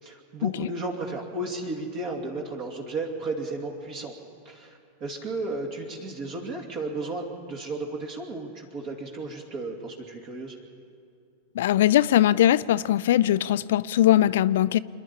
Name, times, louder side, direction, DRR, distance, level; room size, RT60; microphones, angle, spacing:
voice 1, 0.0-4.1 4.4-10.6, right 2 dB, 40° right, 1 dB, 2.6 m, -34 dB
voice 2, 11.5-14.8, left 12 dB, 55° left, 17 dB, 0.4 m, -21 dB
28.0 x 11.0 x 8.5 m, 2.5 s
figure-of-eight pair, 90°, 0 cm